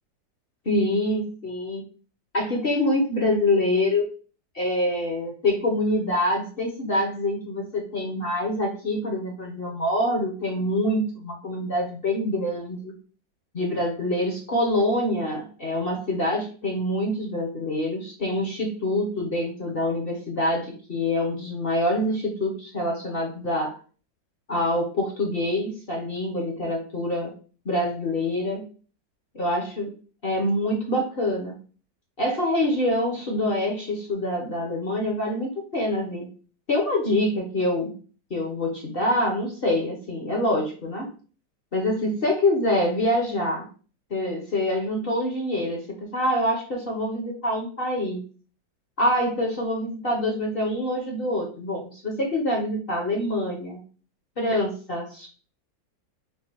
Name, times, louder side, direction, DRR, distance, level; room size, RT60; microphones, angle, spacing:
voice 1, 0.6-1.8 2.3-4.1 4.5-12.9 13.5-23.7 24.5-27.3 27.6-28.6 29.3-29.9 30.2-31.5 32.2-36.3 36.7-37.9 38.3-41.1 41.7-43.7 44.1-48.2 49.0-53.8 54.4-55.3, left 1 dB, 40° left, 0 dB, 0.9 m, -25 dB
4.4 x 2.3 x 4.5 m, 0.38 s
omnidirectional pair, 2.0 m